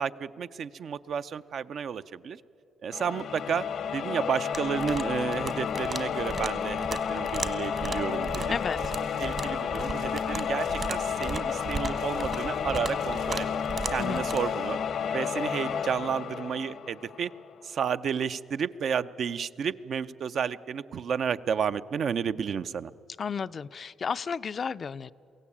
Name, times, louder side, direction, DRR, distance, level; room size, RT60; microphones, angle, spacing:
voice 1, 0.0-2.4 2.8-3.6 3.9-8.6 9.2-13.5 13.9-14.8 15.1-17.3 17.6-22.9, right 7 dB, 60° right, 12 dB, 0.5 m, -31 dB
sound 1, 2.9-17.5, left 7 dB, 65° left, 0.8 m, -31 dB
sound 2, 4.5-14.4, right 4 dB, 45° right, 1.3 m, -38 dB
sound 3, 8.4-14.8, right 4 dB, 85° right, 6.8 m, -45 dB
voice 2, 8.5-8.8 14.0-14.2 23.2-25.1, left 6 dB, 45° left, 14 dB, 0.4 m, -32 dB
23.0 x 16.5 x 8.6 m, 2.8 s
cardioid pair, 90°, 0 cm